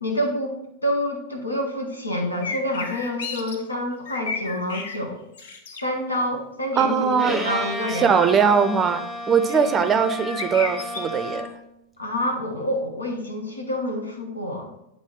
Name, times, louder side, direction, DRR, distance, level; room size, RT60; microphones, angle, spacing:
voice 1, 0.0-5.2 5.8-8.2 9.5-9.8 12.0-14.7, left 1 dB, 80° left, 2 dB, 1.1 m, -27 dB
sound 1, 2.4-3.6 3.9-5.0 5.3-5.8 10.1-11.0, left 4 dB, 60° left, 0.8 m, -32 dB
voice 2, 6.7-7.4 8.0-11.5, right 6 dB, 20° right, 9 dB, 0.5 m, -20 dB
Bowed string instrument, 7.1-11.7, equal, ahead, 0.8 m, -32 dB
8.1 x 3.7 x 3.7 m, 0.84 s
figure-of-eight pair, 90°, 0 cm